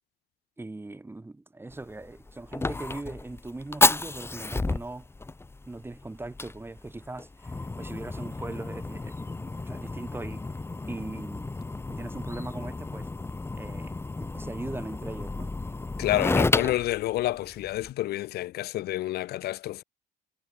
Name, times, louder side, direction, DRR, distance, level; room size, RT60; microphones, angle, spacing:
voice 1, 0.6-5.1 5.7-10.4 10.9-11.5 11.9-13.1 13.5-15.6, right 2 dB, 15° right, 5.3 m, -40 dB
Fire, 1.7-17.9, left 3 dB, 15° left, 1.5 m, -31 dB
voice 2, 16.0-19.8, left 15 dB, 70° left, 1.0 m, -29 dB
cardioid pair, 110°, 17 cm